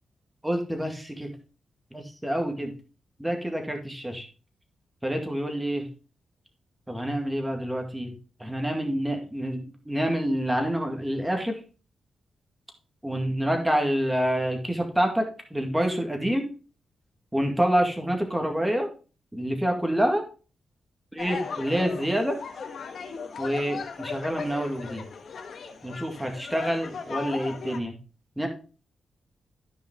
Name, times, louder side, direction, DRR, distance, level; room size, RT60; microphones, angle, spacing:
voice 1, 0.4-1.3 1.9-2.7 3.2-4.3 5.0-5.9 6.9-8.1 8.4-9.6 9.9-11.6 13.0-16.5 17.3-18.9 19.3-20.2 21.1-22.4 23.4-25.1 25.8-28.0 28.4-28.5, equal, 5° right, 3 dB, 2.1 m, -27 dB
sound 1, 21.2-27.8, left 5 dB, 65° left, 1.5 m, -37 dB
13.5 x 5.3 x 3.7 m, 0.35 s
cardioid pair, 105°, 0 cm